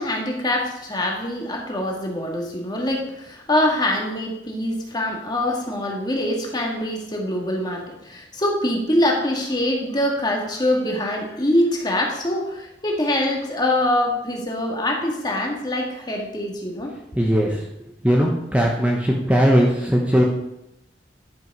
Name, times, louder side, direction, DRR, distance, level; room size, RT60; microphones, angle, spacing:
voice 1, 0.0-16.9, left 1 dB, 20° left, 0 dB, 1.8 m, -24 dB
voice 2, 17.2-17.7 18.0-20.2, equal, 5° right, -1 dB, 0.9 m, -19 dB
10.5 x 6.2 x 5.3 m, 0.86 s
head